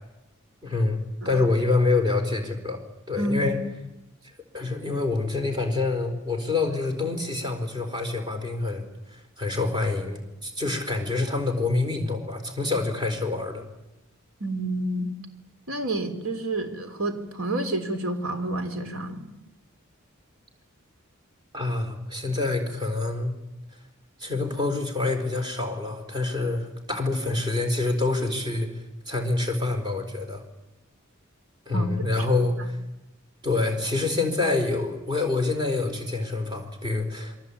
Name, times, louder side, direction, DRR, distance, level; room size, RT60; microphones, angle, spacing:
voice 1, 0.6-1.0 1.2-2.8 3.1-3.6 4.5-8.9 9.1-13.6 21.5-23.4 24.2-30.4 31.7-32.8 33.4-37.4, left 3 dB, 20° right, 4 dB, 4.3 m, -26 dB
voice 2, 3.2-3.5 14.4-15.1 15.7-19.3 31.7-31.9 32.6-32.7, right 1 dB, 80° right, 8 dB, 3.5 m, -29 dB
27.5 x 23.0 x 8.7 m, 0.96 s
head